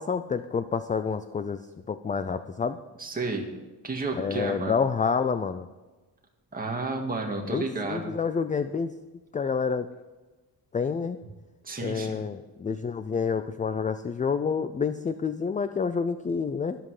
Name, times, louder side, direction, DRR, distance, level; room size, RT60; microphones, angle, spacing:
voice 1, 0.0-1.6 1.9-2.8 4.2-5.7 7.5-8.9 9.3-9.9 10.7-11.2 11.8-16.8, left 5 dB, 20° left, 11 dB, 0.3 m, -28 dB
voice 2, 3.0-3.5 3.8-4.8 6.5-8.1 11.6-12.3, right 3 dB, 20° right, 1 dB, 2.0 m, -32 dB
13.0 x 11.5 x 4.9 m, 1.2 s
wide cardioid pair, 170°, 42 cm